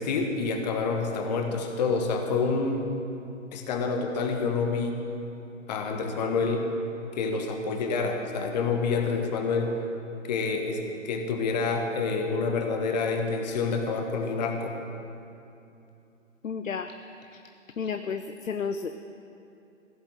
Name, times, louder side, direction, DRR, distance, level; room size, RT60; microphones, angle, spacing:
voice 1, 0.0-2.9 3.5-5.0 5.7-6.7 7.1-9.7 10.2-14.8, left 4 dB, 30° left, 4 dB, 1.4 m, -28 dB
voice 2, 16.4-16.9 17.8-19.0, left 6 dB, 80° left, 9 dB, 0.7 m, -32 dB
16.0 x 7.3 x 9.1 m, 2.8 s
figure-of-eight pair, 135°, 39 cm